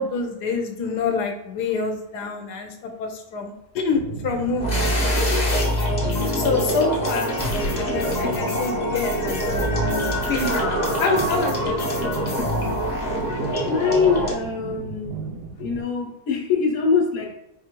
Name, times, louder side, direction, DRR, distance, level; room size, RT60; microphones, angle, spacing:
voice 1, 0.0-4.8 6.3-7.4 7.7-12.4, left 4 dB, 80° left, 3 dB, 1.2 m, -27 dB
sound 1, 3.9-15.8, right 5 dB, 80° right, 1.2 m, -37 dB
sound 2, 4.6-14.3, equal, 35° left, 0.7 m, -24 dB
voice 2, 6.0-6.6 13.6-15.2 15.6-17.3, left 5 dB, 60° left, 1 dB, 1.0 m, -23 dB
4.7 x 2.5 x 2.9 m, 0.87 s
omnidirectional pair, 1.8 m